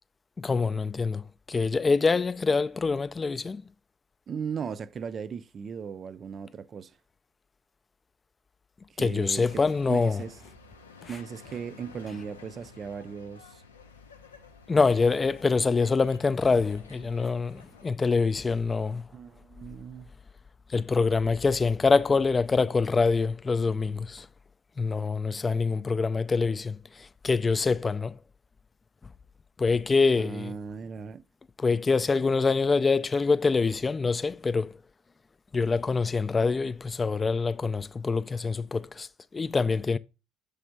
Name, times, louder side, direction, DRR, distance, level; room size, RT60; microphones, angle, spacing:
voice 1, 0.4-3.6 9.0-10.2 11.0-11.2 14.7-19.1 20.7-24.3 24.8-28.2 29.6-30.5 31.6-34.8 35.5-40.0, left 4 dB, 25° left, 0.4 m, -25 dB
voice 2, 4.3-7.0 8.9-9.6 9.9-10.3 11.1-13.6 19.1-20.1 30.2-31.2, right 6 dB, 40° right, 0.4 m, -37 dB
sound 1, 9.4-17.9, left 3 dB, 85° left, 0.5 m, -51 dB
6.8 x 3.4 x 5.1 m
figure-of-eight pair, 55°, 0 cm